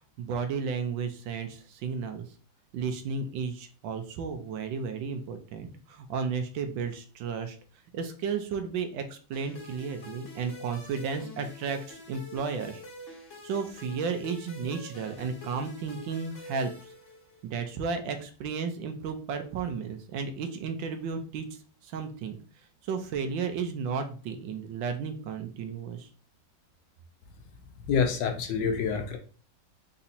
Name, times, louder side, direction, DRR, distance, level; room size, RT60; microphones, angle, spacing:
voice 1, 0.0-2.3 2.7-7.6 7.9-12.8 13.4-16.9 17.4-21.5 21.8-22.4 22.8-26.1, right 5 dB, 75° right, 7 dB, 1.3 m, -33 dB
sound 1, 9.3-17.6, left 1 dB, 40° left, 1.5 m, -46 dB
voice 2, 27.9-29.2, left 6 dB, 70° left, 4 dB, 1.2 m, -27 dB
4.1 x 2.7 x 4.1 m, 0.39 s
omnidirectional pair, 2.2 m